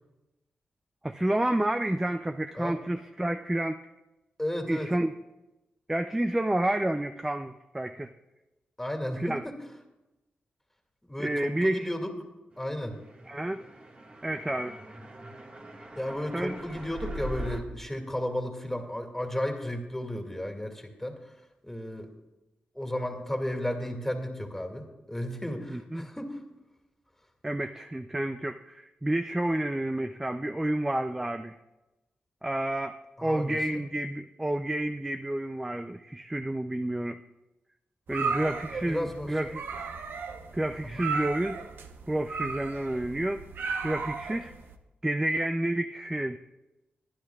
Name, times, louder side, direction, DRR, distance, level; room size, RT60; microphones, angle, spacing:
voice 1, 1.0-3.8 4.7-5.1 5.9-8.1 9.2-9.4 11.2-11.9 13.3-13.6 14.2-14.8 16.3-16.6 25.7-26.1 27.4-31.6 32.4-37.2 38.1-39.6 40.5-41.6 42.1-43.4 43.8-44.5 45.0-46.4, right 1 dB, 10° right, 8 dB, 0.4 m, -30 dB
voice 2, 4.4-4.9 8.8-9.6 11.1-12.1 12.6-13.0 16.0-21.3 21.6-22.1 22.7-26.4 33.2-33.8 38.2-38.6 38.8-39.3 40.8-41.0, left 1 dB, 10° left, 3 dB, 2.1 m, -34 dB
sound 1, 13.1-17.6, right 1 dB, 35° right, 1.7 m, -41 dB
sound 2, 38.1-44.7, right 4 dB, 80° right, 0.9 m, -35 dB
24.0 x 9.9 x 2.4 m, 1.0 s
cardioid pair, 65°, 4 cm